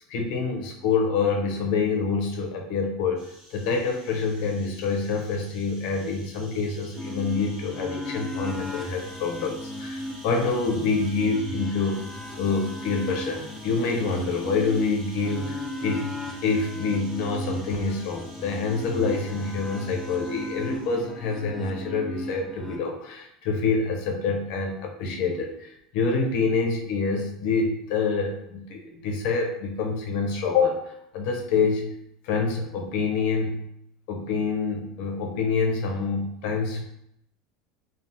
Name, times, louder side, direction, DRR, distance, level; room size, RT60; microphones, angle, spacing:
voice 1, 0.1-3.2 3.5-12.1 12.4-16.1 16.4-31.9 32.2-33.7 34.1-36.8, left 4 dB, 65° left, 1 dB, 0.6 m, -26 dB
sound 1, 3.2-21.1, right 1 dB, 35° right, 1.4 m, -49 dB
sound 2, 7.0-22.8, left 1 dB, 10° left, 0.3 m, -36 dB
3.4 x 2.0 x 2.7 m, 0.76 s
supercardioid pair, 145°, 0 cm